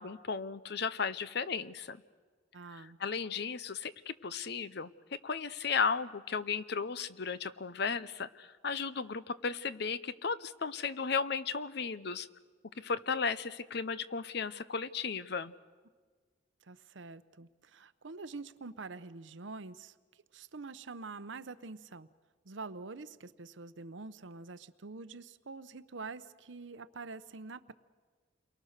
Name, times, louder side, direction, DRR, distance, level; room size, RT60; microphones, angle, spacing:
voice 1, 0.0-2.0 2.7-4.9 5.2-12.3 12.8-15.5, left 5 dB, 60° left, 15 dB, 0.7 m, -35 dB
voice 2, 2.5-3.0 16.6-22.1 22.4-27.7, right 3 dB, 75° right, 13 dB, 0.8 m, -46 dB
29.5 x 23.0 x 6.6 m, 1.5 s
head